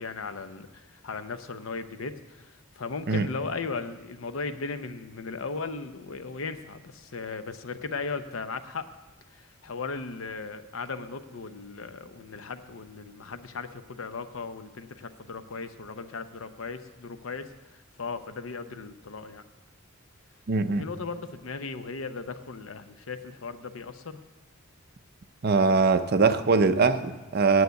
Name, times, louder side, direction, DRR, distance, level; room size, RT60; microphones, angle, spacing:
voice 1, 0.0-8.9 9.6-17.5 18.0-19.4 20.8-24.2, left 4 dB, 70° left, 10 dB, 0.7 m, -37 dB
voice 2, 20.5-20.9 25.4-27.6, right 4 dB, 50° right, 10 dB, 0.6 m, -22 dB
9.3 x 8.0 x 8.1 m, 1.1 s
head